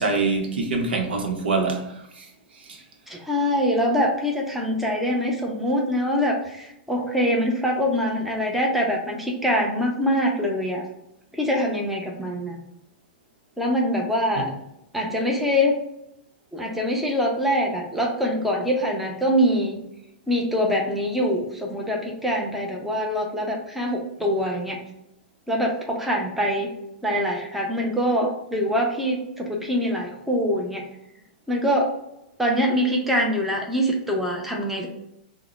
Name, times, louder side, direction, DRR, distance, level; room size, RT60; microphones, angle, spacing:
voice 1, 0.0-2.3 2.7-2.8 14.3-14.4, right 3 dB, 80° right, 0.8 m, -25 dB
voice 2, 3.1-10.8 11.3-12.6 13.6-14.5 14.9-15.7 16.5-19.8 20.3-24.8 25.5-26.7 27.0-30.9 31.5-31.9 32.4-34.9, equal, 5° right, 0.7 m, -24 dB
3.6 x 2.1 x 3.0 m
hypercardioid pair, 125°, 5 cm